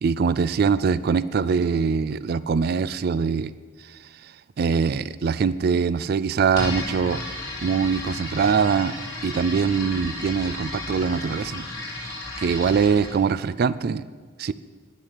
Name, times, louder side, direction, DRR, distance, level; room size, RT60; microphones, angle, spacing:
voice 1, 0.0-3.5 3.9-4.3 4.6-7.2 7.6-8.9 9.2-11.7 12.0-14.0 14.4-14.5, right 5 dB, 50° right, 16 dB, 0.3 m, -23 dB
sound 1, 6.5-13.2, left 2 dB, 90° left, 4.4 m, -34 dB
10.5 x 10.5 x 6.6 m, 1.5 s
head